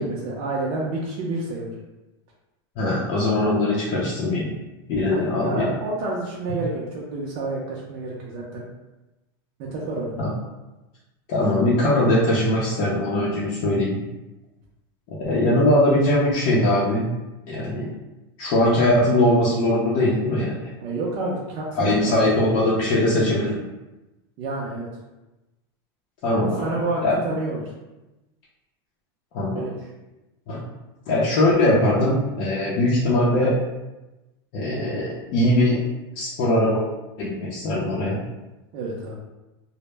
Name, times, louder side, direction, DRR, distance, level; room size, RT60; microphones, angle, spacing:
voice 1, 0.0-1.7 5.1-8.6 9.6-10.2 20.8-22.1 24.4-24.9 26.4-27.6 29.5-29.7 38.7-39.2, right 2 dB, 45° right, -4 dB, 0.4 m, -29 dB
voice 2, 2.8-4.5 4.9-5.6 10.2-10.3 11.3-14.0 15.2-17.1 17.5-17.9 18.4-20.7 21.8-23.6 26.2-26.7 27.0-27.2 29.3-29.6 30.5-30.6 31.1-33.5 34.5-35.8 36.2-36.8 37.2-38.2, left 1 dB, 50° left, -7 dB, 0.5 m, -21 dB
2.0 x 2.0 x 3.2 m, 1.0 s
supercardioid pair, 150°, 13 cm